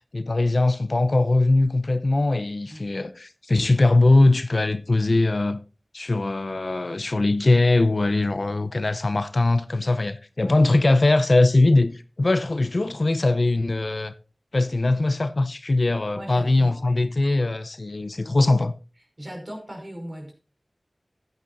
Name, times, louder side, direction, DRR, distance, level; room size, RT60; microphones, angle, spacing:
voice 1, 0.1-5.6 5.9-14.1 14.5-18.7, left 2 dB, 65° left, 0.7 m, -21 dB
voice 2, 16.1-17.0 19.2-20.3, equal, 35° right, 5.2 m, -38 dB
15.0 x 9.2 x 2.6 m
wide cardioid pair, 50°, 0 cm